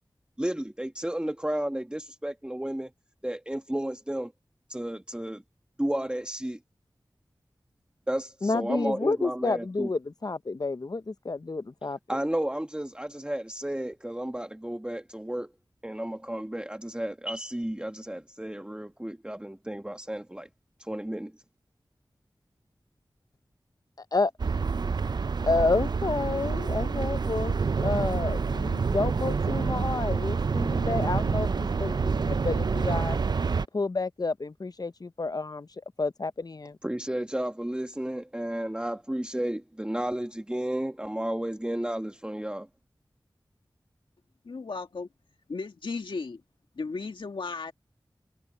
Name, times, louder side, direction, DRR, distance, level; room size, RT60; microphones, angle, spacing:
voice 1, 0.4-2.9 3.2-4.3 4.7-5.4 5.8-6.6 8.1-9.9 12.1-15.5 15.8-20.5 20.8-21.3 36.8-42.7, right 1 dB, 10° right, 1.3 m, -32 dB
voice 2, 8.4-12.2 24.1-24.3 25.5-33.2 33.7-35.7 36.0-36.8, left 3 dB, 50° left, 0.7 m, -30 dB
sound 1, 24.4-33.7, right 5 dB, 60° right, 0.4 m, -27 dB
voice 3, 44.5-45.1 45.5-46.4 46.8-47.7, left 4 dB, 85° left, 2.0 m, -35 dB
cardioid pair, 40°, 8 cm